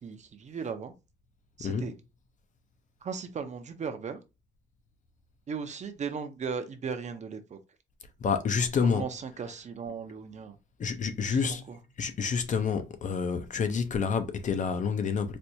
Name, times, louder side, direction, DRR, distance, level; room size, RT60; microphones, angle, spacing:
voice 1, 0.0-0.9 1.6-1.9 3.0-4.2 5.5-7.6 8.8-10.6 11.2-11.8, right 6 dB, 40° right, 0.5 m, -37 dB
voice 2, 8.2-9.0 10.8-11.6 12.0-15.4, left 6 dB, 40° left, 0.4 m, -28 dB
4.3 x 2.2 x 2.6 m
wide cardioid pair, 175°, 19 cm